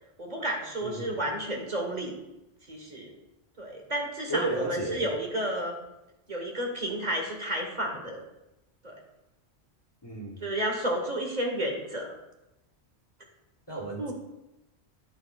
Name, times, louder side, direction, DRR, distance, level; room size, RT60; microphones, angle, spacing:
voice 1, 0.2-2.1 2.7-3.1 3.6-5.8 6.3-8.2 8.8-8.9 10.4-12.1 14.0-14.1, right 1 dB, 40° right, 1 dB, 1.3 m, -31 dB
voice 2, 0.8-1.2 4.3-5.1 10.0-10.4 13.7-14.1, right 2 dB, 25° left, 0 dB, 1.0 m, -33 dB
10.5 x 8.5 x 2.4 m, 0.95 s
omnidirectional pair, 1.2 m